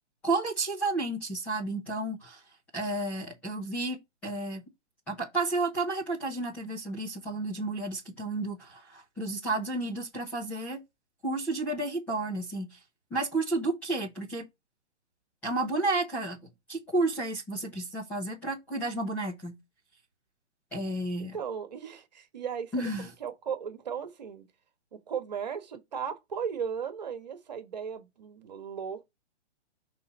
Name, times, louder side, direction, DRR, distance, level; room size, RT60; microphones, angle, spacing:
voice 1, 0.2-2.4 2.7-4.6 5.1-10.8 11.2-12.8 13.1-14.4 15.4-19.6 20.7-21.4 22.7-23.1, right 2 dB, 5° left, 1.0 m, -31 dB
voice 2, 21.3-24.5 24.9-29.0, right 7 dB, 35° right, 1.7 m, -36 dB
6.6 x 4.0 x 5.5 m
hypercardioid pair, 180°, 35 cm